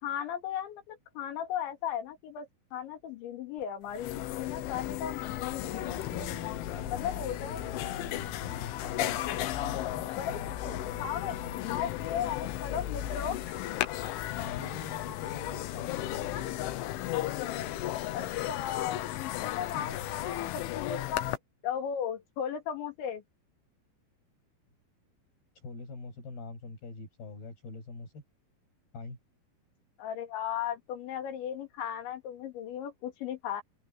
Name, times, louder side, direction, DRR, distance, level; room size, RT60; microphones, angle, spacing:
voice 1, 0.0-5.9 6.2-6.3 6.9-7.6 10.1-11.4 11.7-13.6 15.2-15.5 16.1-16.4 18.1-19.0 19.4-21.4 21.6-23.2 30.0-33.6, left 9 dB, 75° left, 5.0 m, -36 dB
sound 1, 3.6-3.7 3.9-21.4, left 14 dB, 90° left, 3.7 m, -35 dB
voice 2, 5.6-11.9 14.4-16.3 19.8-20.1 25.6-28.2 28.9-29.2, left 3 dB, 55° left, 9.7 m, -45 dB
omnidirectional pair, 5.4 m